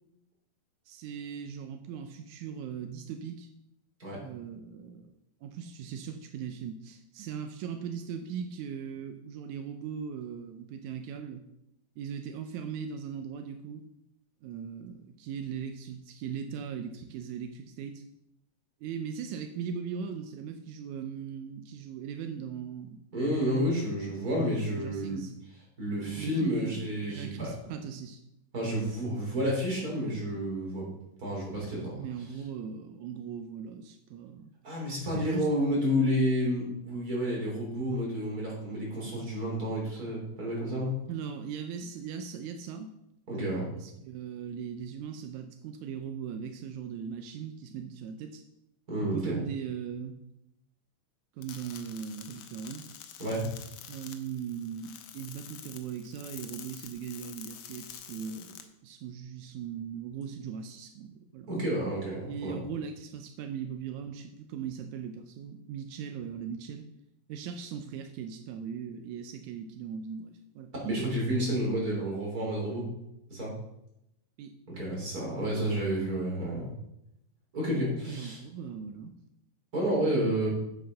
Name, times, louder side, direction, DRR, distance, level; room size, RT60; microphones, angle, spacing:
voice 1, 0.9-3.5 4.2-11.4 12.0-13.9 14.4-18.0 18.8-23.0 24.7-25.3 25.9-28.2 31.9-34.5 35.1-35.5 41.1-42.9 43.7-48.4 49.0-50.2 51.4-52.8 53.9-61.5 62.2-66.8 67.3-71.1 74.4-74.5 78.1-79.1, right 7 dB, 85° right, 7 dB, 1.7 m, -39 dB
voice 2, 23.1-25.2 25.8-27.5 28.5-30.9 31.2-31.9 34.6-41.0 43.3-43.6 48.9-49.4 53.2-53.5 61.5-62.6 70.8-72.9 73.3-73.5 74.7-76.7 77.5-78.4 79.7-80.5, equal, 25° right, -3 dB, 3.7 m, -30 dB
sound 1, 51.4-58.6, left 10 dB, 75° left, 1.8 m, -47 dB
8.0 x 7.7 x 5.5 m, 0.82 s
omnidirectional pair, 4.2 m